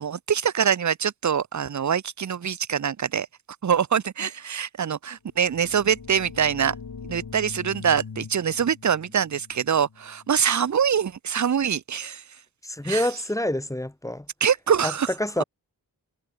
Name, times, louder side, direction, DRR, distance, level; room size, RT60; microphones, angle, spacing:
voice 1, 0.0-3.3 3.6-6.8 7.1-12.2 12.8-13.1 14.4-15.1, right 8 dB, 50° right, 0.7 m, -24 dB
sound 1, 5.3-10.9, left 5 dB, 75° left, 4.3 m, -42 dB
voice 2, 12.6-14.3 14.8-14.9 15.2-15.4, left 1 dB, 10° left, 1.0 m, -27 dB
wide cardioid pair, 90°, 37 cm